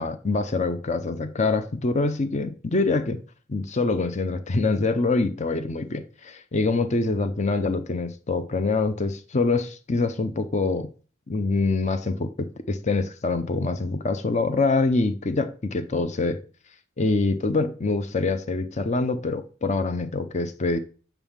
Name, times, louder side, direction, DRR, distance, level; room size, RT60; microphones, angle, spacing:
voice 1, 0.0-3.2 3.5-10.9 11.3-16.4 17.0-20.8, left 3 dB, 35° left, 0.6 m, -25 dB
7.1 x 5.5 x 7.1 m
head